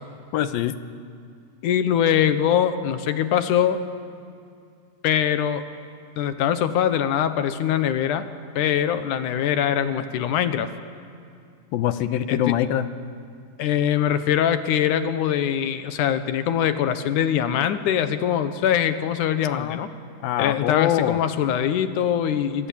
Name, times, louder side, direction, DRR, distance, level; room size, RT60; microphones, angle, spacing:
voice 1, 0.3-0.8 11.7-12.9 19.5-19.8 20.2-21.2, left 11 dB, 85° left, 11 dB, 2.8 m, -23 dB
voice 2, 1.6-3.8 5.0-5.6 6.2-8.3 8.6-10.7 12.3-12.6 13.6-19.9 20.4-22.7, left 9 dB, 65° left, 10 dB, 2.4 m, -22 dB
29.0 x 23.0 x 8.7 m, 2.4 s
omnidirectional pair, 4.2 m